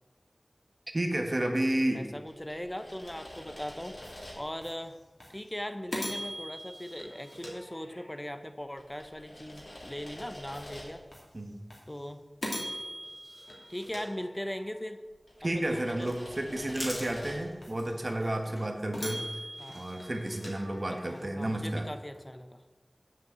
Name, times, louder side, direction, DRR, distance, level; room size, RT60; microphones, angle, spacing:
voice 1, 0.9-2.1 11.3-11.6 15.4-19.2 19.7-21.9, right 1 dB, 50° right, 3 dB, 1.4 m, -31 dB
voice 2, 1.9-4.0 4.3-5.0 5.3-11.0 11.9-12.2 13.7-15.0 15.5-16.1 19.6-19.8 20.9-22.6, left 1 dB, 20° left, 9 dB, 0.7 m, -39 dB
sound 1, 2.3-4.7 5.2-5.4 5.9-8.3 8.8-11.2 11.7-11.9 12.4-14.8 15.3-17.7 18.2-18.3 18.9-21.3, equal, 65° left, 2.6 m, -42 dB
sound 2, 15.3-22.2, left 1 dB, 45° left, 2.6 m, -47 dB
7.6 x 5.8 x 7.3 m, 1.3 s
wide cardioid pair, 45°, 0 cm